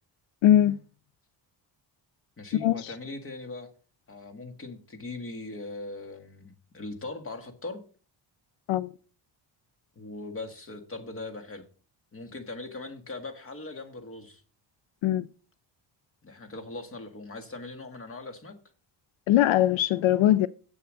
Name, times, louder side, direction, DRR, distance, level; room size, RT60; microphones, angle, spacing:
voice 1, 0.4-0.8 2.6-2.9 8.7-8.9 15.0-15.3 19.3-20.5, left 12 dB, 80° left, 0.6 m, -21 dB
voice 2, 2.4-3.7 4.1-7.8 10.0-11.7 12.1-14.4 16.2-18.5, left 2 dB, 30° left, 1.7 m, -40 dB
8.0 x 7.0 x 6.3 m
cardioid pair, 145°, 46 cm